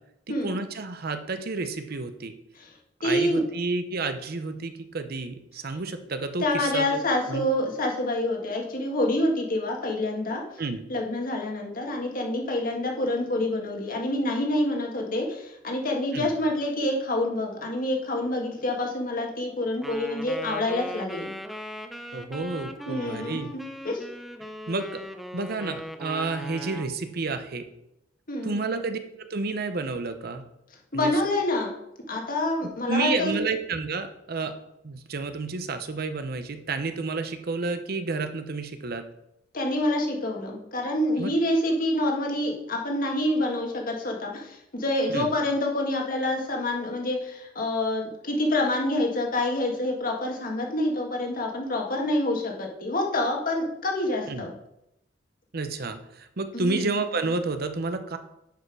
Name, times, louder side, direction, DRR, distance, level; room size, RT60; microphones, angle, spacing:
voice 1, 0.3-2.3 3.0-7.0 7.3-7.5 10.6-10.8 16.1-16.3 22.1-23.5 24.7-25.0 25.3-27.6 28.4-30.4 30.9-31.1 32.9-34.5 34.8-39.0 41.2-41.3 45.1-45.3 54.3-54.5 55.5-58.2, right 3 dB, 55° right, 9 dB, 0.8 m, -30 dB
voice 2, 3.0-3.4 6.4-10.4 10.9-21.3 22.9-23.4 23.8-24.0 28.3-28.6 30.9-31.7 32.1-33.4 39.5-54.5 56.5-56.9, left 1 dB, 50° left, 1 dB, 1.8 m, -27 dB
Wind instrument woodwind instrument, 19.8-26.9, equal, ahead, 0.6 m, -39 dB
10.0 x 5.5 x 4.7 m, 0.83 s
head